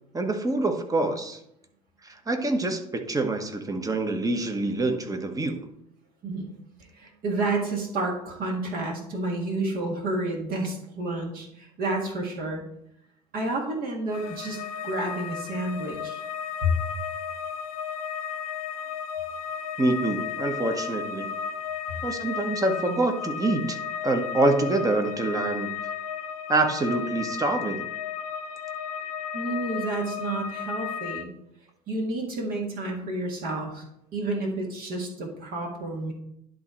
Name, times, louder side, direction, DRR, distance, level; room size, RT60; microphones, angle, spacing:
voice 1, 0.1-1.4 2.0-5.7 19.8-21.3 22.0-23.8 24.0-25.8 26.5-27.9, right 2 dB, 15° right, 6 dB, 1.2 m, -26 dB
voice 2, 6.9-12.6 13.3-16.2 16.6-16.7 29.3-31.3 31.9-33.8 34.1-36.1, right 2 dB, 45° right, 0 dB, 1.8 m, -30 dB
sound 1, 14.1-31.2, left 7 dB, 65° left, 0.8 m, -34 dB
11.0 x 3.9 x 4.4 m, 0.78 s
figure-of-eight pair, 65°, 20 cm